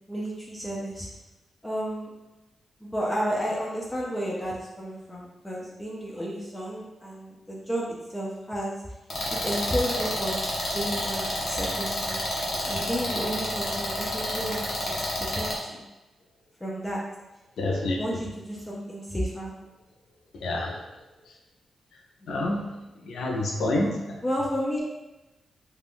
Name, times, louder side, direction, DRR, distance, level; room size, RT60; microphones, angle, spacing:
voice 1, 0.1-1.1 1.6-2.1 2.8-8.7 9.4-12.2 12.6-15.8 16.6-17.0 17.9-19.5 23.8-23.9 24.2-24.8, equal, 10° left, -4 dB, 0.4 m, -32 dB
sound 1, 9.1-15.6, left 1 dB, 45° left, 0.8 m, -29 dB
voice 2, 17.6-18.0 20.3-20.8 22.3-22.7 23.0-24.0, left 2 dB, 75° left, -1 dB, 0.5 m, -28 dB
2.4 x 2.3 x 3.4 m, 1.0 s
wide cardioid pair, 150°, 0 cm